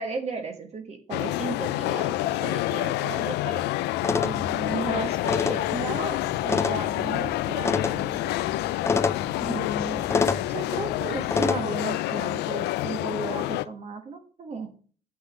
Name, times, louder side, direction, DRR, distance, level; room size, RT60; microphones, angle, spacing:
voice 1, 0.0-3.7 4.2-8.3 9.4-14.7, right 4 dB, 40° right, 4 dB, 1.4 m, -35 dB
sound 1, 1.1-13.7, left 16 dB, 85° left, 0.5 m, -28 dB
sound 2, 4.0-11.6, left 4 dB, 15° left, 0.4 m, -29 dB
7.2 x 6.1 x 6.4 m, 0.41 s
cardioid pair, 110°, 17 cm